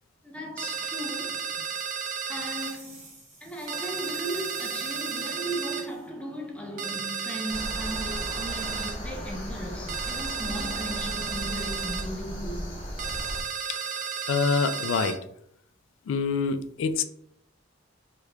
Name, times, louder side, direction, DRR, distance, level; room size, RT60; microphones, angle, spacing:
voice 1, 0.2-1.7 2.3-12.9, right 1 dB, 5° left, 0.5 m, -37 dB
sound 1, 0.6-2.8 3.7-5.9 6.8-9.0 9.9-12.1 13.0-15.2, right 6 dB, 40° right, 0.3 m, -33 dB
sound 2, 2.4-6.1, right 3 dB, 85° right, 1.0 m, -47 dB
sound 3, 7.5-13.4, equal, 25° left, 0.9 m, -36 dB
voice 2, 14.3-15.3 16.1-17.0, left 5 dB, 70° left, 0.3 m, -26 dB
2.9 x 2.3 x 3.2 m
head